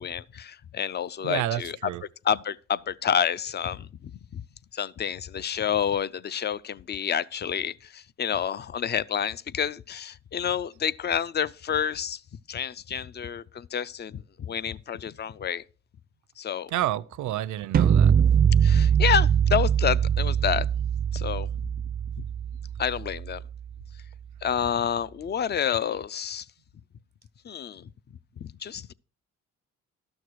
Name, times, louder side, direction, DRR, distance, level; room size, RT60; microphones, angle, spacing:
voice 1, 0.0-1.9 2.2-4.4 4.7-12.2 12.5-15.6 16.4-16.7 18.6-20.7 21.1-21.5 22.2-22.3 22.8-23.4 24.4-26.5 27.4-27.9 28.4-28.9, left 8 dB, 35° left, 0.4 m, -29 dB
voice 2, 1.2-2.0 16.7-18.1, right 13 dB, 75° right, 0.6 m, -29 dB
sound 1, 17.7-23.7, right 8 dB, 30° right, 0.4 m, -23 dB
12.0 x 6.4 x 4.6 m
cardioid pair, 90°, 30 cm